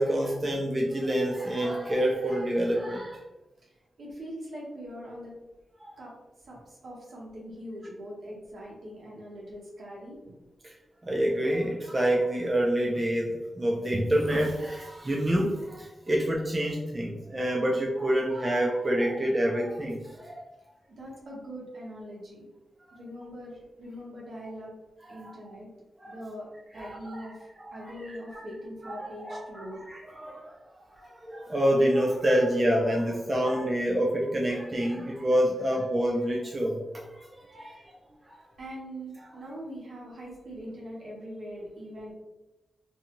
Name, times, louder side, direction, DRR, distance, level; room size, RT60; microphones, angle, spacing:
voice 1, 0.0-3.2 5.8-6.0 10.6-10.8 11.0-20.5 25.0-25.5 26.0-26.2 26.7-28.4 28.8-30.6 30.9-37.8 38.2-38.4, equal, 25° right, -2 dB, 0.4 m, -28 dB
voice 2, 4.0-5.3 6.0-6.1 6.5-10.2 21.0-22.5 22.9-23.5 23.8-24.7 25.1-25.7 26.1-26.5 26.7-27.3 27.7-29.8 37.7-37.8 38.6-42.1, equal, 70° right, -4 dB, 1.0 m, -42 dB
2.7 x 2.3 x 2.9 m, 1.0 s
cardioid pair, 80°, 0 cm